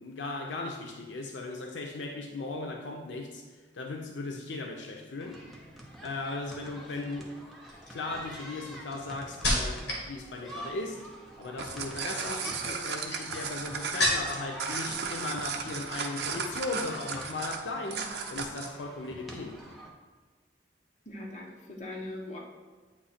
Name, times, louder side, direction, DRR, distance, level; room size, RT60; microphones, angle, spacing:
voice 1, 0.0-3.4 3.7-5.4 6.0-7.3 7.7-11.0 11.4-19.6, left 2 dB, 85° left, 2 dB, 0.6 m, -37 dB
sound 1, 5.2-19.9, right 1 dB, ahead, 0.8 m, -47 dB
sound 2, 6.6-7.0 7.7-10.1 10.4-10.9 12.1-14.5 14.9-15.5 15.8-16.0, left 1 dB, 65° left, 1.6 m, -33 dB
sound 3, 11.4-18.8, right 5 dB, 65° right, 0.5 m, -35 dB
voice 2, 21.1-22.4, left 1 dB, 40° left, -2 dB, 1.0 m, -40 dB
8.3 x 2.8 x 4.2 m, 1.4 s
head